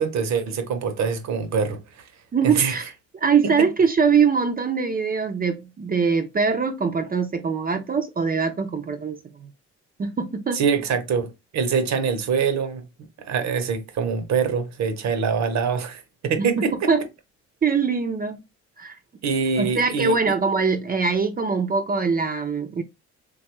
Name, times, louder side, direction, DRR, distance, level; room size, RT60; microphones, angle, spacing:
voice 1, 0.0-2.1 2.4-2.8 3.4-3.5 10.5-12.8 13.2-16.9 19.2-20.2, right 6 dB, 65° right, 0.8 m, -24 dB
voice 2, 2.3-2.9 3.2-9.5 10.0-10.6 16.4-17.0 17.6-18.4 18.8-19.0 19.6-22.8, right 5 dB, 30° right, 0.5 m, -23 dB
3.4 x 2.3 x 3.0 m
cardioid pair, 90°, 30 cm